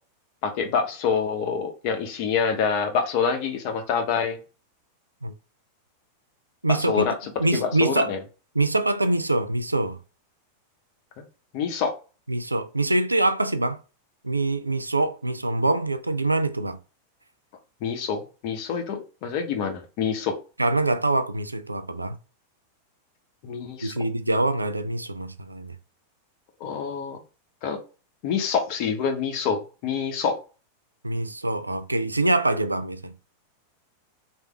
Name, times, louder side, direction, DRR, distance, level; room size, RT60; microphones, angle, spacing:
voice 1, 0.4-4.4 6.8-8.2 11.5-11.9 17.8-20.3 23.4-23.9 26.6-27.2 27.6-27.8 28.2-30.3, left 6 dB, 45° left, 0.8 m, -26 dB
voice 2, 6.6-7.1 7.4-8.1 8.5-10.0 12.3-13.8 14.2-16.8 20.6-22.2 23.8-25.8 31.0-33.1, right 2 dB, 85° right, 0.3 m, -24 dB
3.4 x 2.7 x 3.2 m
figure-of-eight pair, 90°, 0 cm